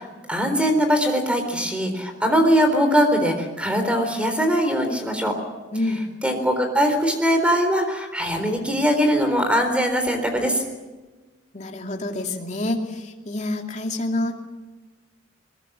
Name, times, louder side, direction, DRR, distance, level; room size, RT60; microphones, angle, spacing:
voice 1, 0.0-5.3 6.2-10.6, equal, 5° right, 6 dB, 3.9 m, -21 dB
voice 2, 5.7-6.0 11.5-14.3, left 2 dB, 35° left, 2 dB, 2.6 m, -27 dB
22.0 x 21.5 x 7.5 m, 1.2 s
head